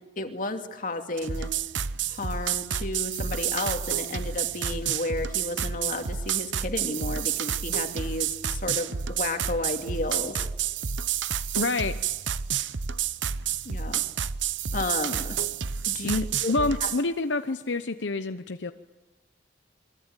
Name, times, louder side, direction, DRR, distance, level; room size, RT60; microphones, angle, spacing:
voice 1, 0.2-1.5 2.1-10.4 13.6-14.0 14.7-15.4 15.9-16.5 16.8-16.9, left 2 dB, 45° left, 5 dB, 2.6 m, -32 dB
sound 1, 1.2-17.0, right 8 dB, 85° right, 0.9 m, -30 dB
voice 2, 11.6-12.0 16.0-18.7, left 3 dB, 80° left, 9 dB, 0.9 m, -27 dB
28.0 x 23.0 x 9.1 m, 1.1 s
head